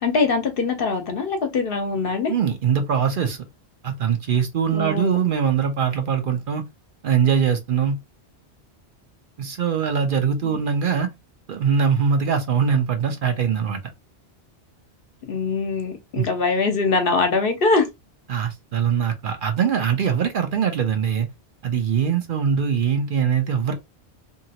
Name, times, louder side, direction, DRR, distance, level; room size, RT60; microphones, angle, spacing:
voice 1, 0.0-2.3 4.7-5.2 10.4-10.6 15.2-17.9, left 4 dB, 60° left, 0.9 m, -22 dB
voice 2, 2.3-3.4 3.8-6.6 7.0-8.0 9.4-11.1 11.5-13.8 16.2-16.3 18.3-21.3 21.6-23.7, right 7 dB, 60° right, 0.7 m, -22 dB
2.9 x 2.7 x 2.8 m
omnidirectional pair, 1.1 m